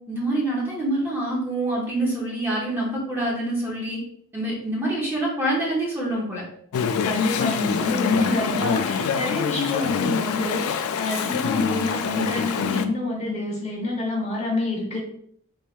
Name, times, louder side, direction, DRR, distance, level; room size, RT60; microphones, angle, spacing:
voice 1, 0.1-4.0 4.3-6.4, right 1 dB, 10° right, -5 dB, 0.8 m, -26 dB
Chatter / Stream, 6.7-12.9, left 6 dB, 80° left, 0.3 m, -25 dB
voice 2, 7.0-15.0, left 2 dB, 30° left, -2 dB, 0.9 m, -27 dB
3.3 x 3.1 x 2.4 m, 0.65 s
head